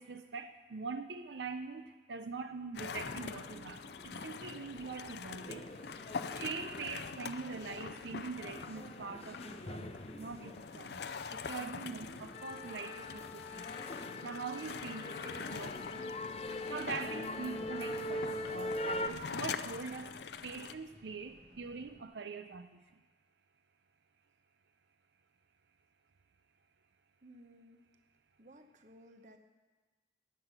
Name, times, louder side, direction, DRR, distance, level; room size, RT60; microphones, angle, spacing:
voice 1, 0.0-5.7 6.3-13.7 14.2-16.0 16.7-20.2 20.4-23.0, right 5 dB, 85° right, 9 dB, 0.6 m, -43 dB
sound 1, 2.7-20.7, left 5 dB, 70° left, 0.5 m, -44 dB
sound 2, 2.8-19.1, left 1 dB, 35° left, 0.7 m, -43 dB
sound 3, 15.5-22.0, equal, 65° right, 1.9 m, -61 dB
voice 2, 27.2-27.9 28.4-29.4, equal, 45° right, 7 dB, 0.9 m, -57 dB
14.5 x 9.6 x 5.8 m, 1.3 s
head